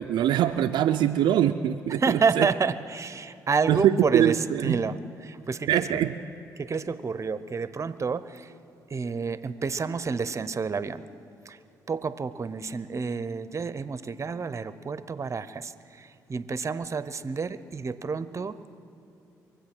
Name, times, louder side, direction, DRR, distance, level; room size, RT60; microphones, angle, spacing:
voice 1, 0.0-2.5 3.7-4.8 5.7-6.1, right 11 dB, 70° right, 6 dB, 0.5 m, -23 dB
voice 2, 2.0-4.4 4.6-5.0 5.2-5.8 6.6-8.5 8.9-11.0 11.5-11.6 11.9-15.7 16.0-18.6, right 5 dB, 40° right, 15 dB, 0.8 m, -29 dB
23.5 x 8.1 x 6.1 m, 2.8 s
supercardioid pair, 55°, 8 cm